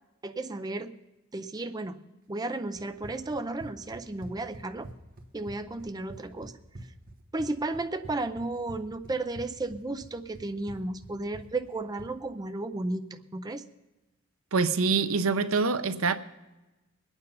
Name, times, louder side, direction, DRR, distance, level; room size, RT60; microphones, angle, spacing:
voice 1, 0.2-0.9 1.3-2.0 2.3-4.9 5.3-6.5 7.3-13.6, right 2 dB, 20° right, 0.5 m, -33 dB
Run, 2.7-12.2, right 1 dB, 40° right, 1.3 m, -47 dB
voice 2, 14.5-16.2, right 4 dB, 70° right, 0.7 m, -25 dB
21.5 x 9.1 x 5.6 m
head